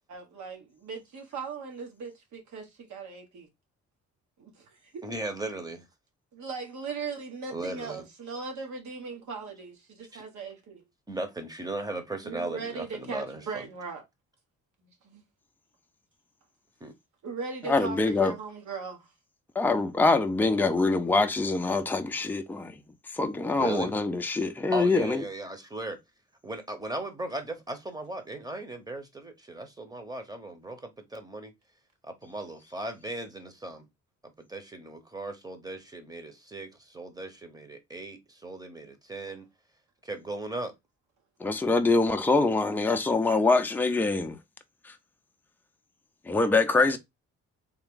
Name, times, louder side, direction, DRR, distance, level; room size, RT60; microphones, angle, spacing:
voice 1, 0.1-3.5 4.4-5.0 6.3-10.8 12.2-14.0 14.8-15.2 17.2-19.1, right 5 dB, 70° right, 1.5 m, -39 dB
voice 2, 5.0-5.9 7.5-8.1 10.1-10.2 11.1-13.7 16.8-16.9 23.6-23.9 24.7-26.0 26.4-31.5 32.0-33.8 34.4-39.4 40.0-40.7 46.9-47.0, right 2 dB, 10° right, 1.0 m, -37 dB
voice 3, 17.7-18.3 19.6-22.7 23.1-25.2 41.4-44.4 44.9-45.0 46.3-47.0, left 3 dB, 5° left, 0.5 m, -24 dB
3.5 x 2.3 x 3.7 m
cardioid pair, 90°, 30 cm